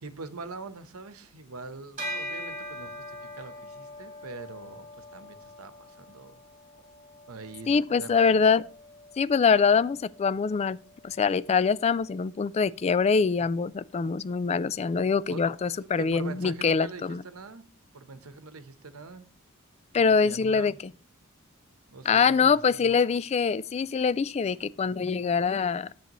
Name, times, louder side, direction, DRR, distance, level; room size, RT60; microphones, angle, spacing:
voice 1, 0.0-6.3 7.3-8.4 15.3-17.6 17.9-19.2 20.0-20.8 21.9-22.5 22.8-22.9, right 3 dB, 85° right, 1.0 m, -43 dB
Bell, 2.0-11.7, equal, 35° right, 4.2 m, -43 dB
voice 2, 7.7-8.6 9.2-10.8 11.0-17.2 19.9-20.7 22.1-25.9, left 5 dB, 30° left, 0.3 m, -24 dB
10.5 x 7.9 x 3.0 m
head